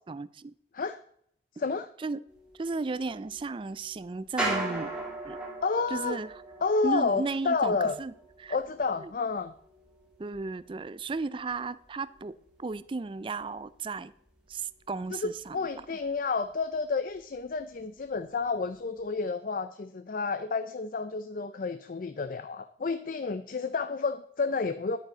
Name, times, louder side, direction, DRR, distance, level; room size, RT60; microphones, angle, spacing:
voice 1, 0.1-0.5 2.0-2.2 2.6-4.9 5.2-5.4 5.9-6.4 6.8-8.1 8.4-8.6 9.0-9.1 10.2-14.1 14.5-15.6, right 3 dB, 30° right, 16 dB, 0.4 m, -34 dB
voice 2, 1.6-1.9 5.6-6.2 6.6-8.0 8.5-9.5 15.1-25.0, left 4 dB, 50° left, 12 dB, 0.5 m, -30 dB
sound 1, 2.3-13.9 14.2-15.8 16.0-16.1 16.5-17.0 17.3-18.5 19.0-19.1, right 2 dB, 5° right, 2.0 m, -40 dB
10.5 x 8.9 x 3.9 m, 0.66 s
head